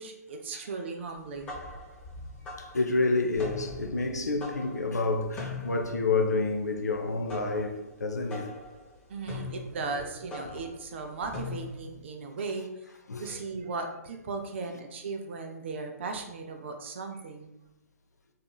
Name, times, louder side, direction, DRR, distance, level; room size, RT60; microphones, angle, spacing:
voice 1, 0.0-1.6 9.1-12.7 13.2-17.5, right 4 dB, 45° right, 0.4 m, -37 dB
sound 1, 1.2-12.0, left 3 dB, 15° left, 0.6 m, -42 dB
voice 2, 2.6-8.6 9.3-9.4 13.1-13.4, left 3 dB, 80° left, 0.4 m, -29 dB
2.7 x 2.4 x 2.2 m
figure-of-eight pair, 125°, 9 cm